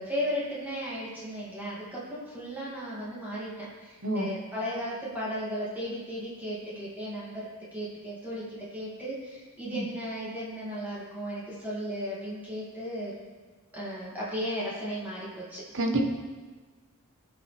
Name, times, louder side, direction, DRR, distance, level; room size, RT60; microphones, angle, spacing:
voice 1, 0.0-8.4 8.7-13.1 13.7-15.6, equal, 10° right, -8 dB, 2.4 m, -35 dB
voice 2, 4.0-4.3 9.7-9.8 15.7-16.0, right 2 dB, 60° right, 2 dB, 1.3 m, -28 dB
17.0 x 6.2 x 3.4 m, 1.4 s
head